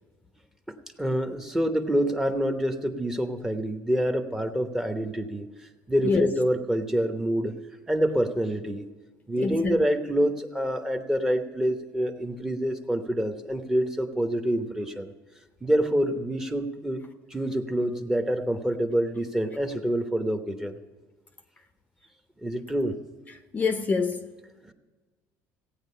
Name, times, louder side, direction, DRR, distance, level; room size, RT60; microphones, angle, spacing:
voice 1, 0.7-5.5 5.9-7.5 7.9-8.9 9.3-15.1 15.6-17.0 17.3-20.8 22.4-23.0 24.7-24.8, equal, 5° right, 0.9 m, -27 dB
voice 2, 9.4-9.8 23.5-24.3, left 4 dB, 25° left, 0.7 m, -26 dB
16.0 x 9.1 x 5.5 m
cardioid pair, 140°, 7 cm